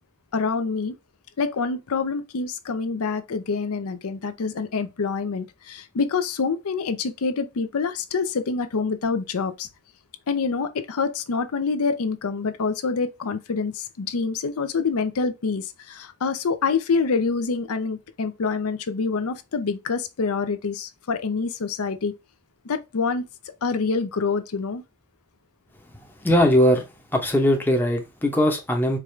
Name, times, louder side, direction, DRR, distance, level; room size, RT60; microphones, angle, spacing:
voice 1, 0.3-0.9 1.4-9.7 10.3-22.1 22.6-23.2 23.6-24.8, left 4 dB, 75° left, 0.5 m, -26 dB
voice 2, 26.2-26.8 27.1-29.0, equal, 10° left, 0.6 m, -20 dB
4.6 x 2.4 x 3.1 m
head